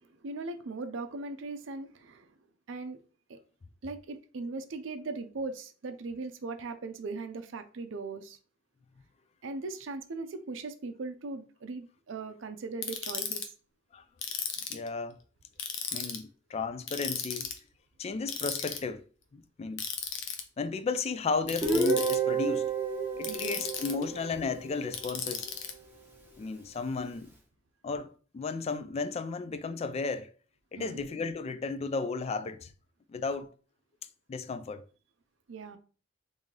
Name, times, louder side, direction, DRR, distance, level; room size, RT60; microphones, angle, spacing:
voice 1, 0.0-2.3 2.7-3.0 3.3-3.4 3.8-8.4 9.4-13.5 23.3-23.6 30.8-31.0 35.5-35.8, right 3 dB, 75° right, 0.5 m, -39 dB
Ratchet pawl, 12.8-13.4 14.2-14.9 15.6-16.2 16.9-17.6 18.3-18.8 19.8-20.4 21.5-22.2 23.2-24.0 24.9-25.7, left 7 dB, 70° left, 0.6 m, -35 dB
voice 2, 14.7-15.2 15.9-17.5 18.0-19.0 19.3-19.8 20.6-22.7 23.1-25.5 26.4-27.3 27.8-30.3 30.7-32.7 33.1-33.5 34.3-34.8, left 4 dB, 35° left, 0.3 m, -34 dB
Guitar, 21.6-25.4, right 4 dB, 10° right, 1.0 m, -31 dB
3.1 x 2.7 x 3.7 m
head